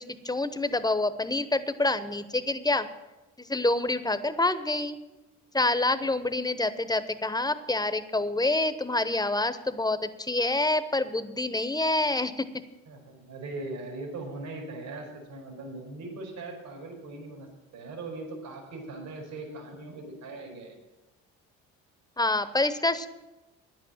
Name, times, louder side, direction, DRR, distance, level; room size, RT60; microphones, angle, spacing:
voice 1, 0.0-2.9 3.4-5.0 5.5-12.5 22.2-23.1, left 2 dB, 10° left, 12 dB, 0.9 m, -27 dB
voice 2, 12.9-20.7, right 2 dB, 75° right, 0 dB, 5.0 m, -40 dB
10.0 x 8.7 x 7.4 m, 1.1 s
supercardioid pair, 60°, 36 cm